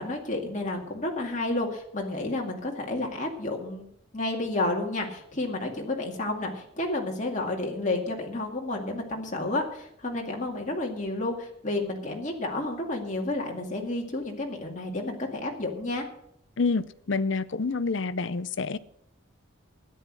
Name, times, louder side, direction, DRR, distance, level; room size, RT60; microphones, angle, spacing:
voice 1, 0.0-3.9 4.1-16.1, left 2 dB, 35° left, 0 dB, 2.2 m, -31 dB
voice 2, 16.6-18.8, left 4 dB, 65° left, 15 dB, 0.6 m, -28 dB
13.0 x 10.0 x 6.3 m, 0.74 s
head